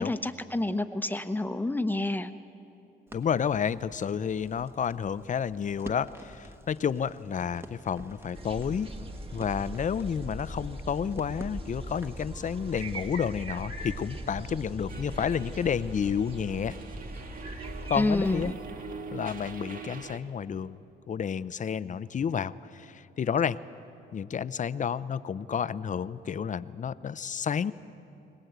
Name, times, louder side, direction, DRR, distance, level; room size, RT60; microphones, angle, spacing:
voice 1, 0.0-2.3 17.9-18.6, left 2 dB, 10° left, 10 dB, 1.0 m, -29 dB
voice 2, 3.1-8.9 9.3-16.8 17.9-18.5 19.1-20.8 21.1-23.6 24.1-27.7, left 7 dB, 40° left, 16 dB, 0.6 m, -30 dB
Crackle, 3.1-12.3, right 1 dB, 10° right, 1.4 m, -49 dB
sound 1, 8.3-18.5, right 1 dB, 30° right, 2.1 m, -40 dB
sound 2, 14.9-20.2, right 3 dB, 45° right, 1.7 m, -42 dB
22.0 x 19.5 x 8.1 m, 2.8 s
cardioid pair, 90°, 20 cm